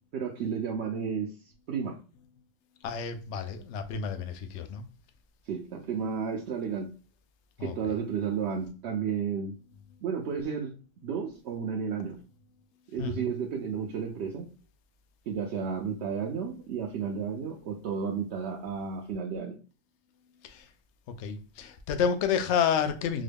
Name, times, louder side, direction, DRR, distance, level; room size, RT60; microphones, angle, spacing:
voice 1, 0.1-1.3 1.7-2.0 5.5-6.9 7.6-9.6 10.0-10.7 11.0-12.2 12.9-14.5 15.3-19.6, right 6 dB, 65° right, 0.8 m, -32 dB
voice 2, 2.8-4.8 7.6-8.0 13.0-13.3 20.4-20.7 21.1-23.2, left 7 dB, 65° left, 0.8 m, -30 dB
3.7 x 2.1 x 3.4 m
omnidirectional pair, 1.4 m